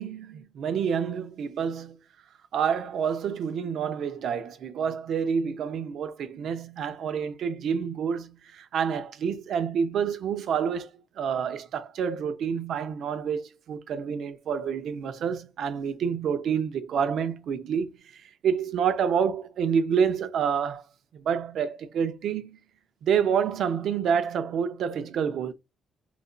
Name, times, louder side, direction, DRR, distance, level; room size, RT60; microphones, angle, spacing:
voice 1, 0.0-2.0 2.5-10.9 11.2-20.8 21.1-22.6 23.0-25.5, right 7 dB, 70° right, 0.5 m, -28 dB
4.0 x 2.5 x 2.3 m
cardioid pair, 90°, 0 cm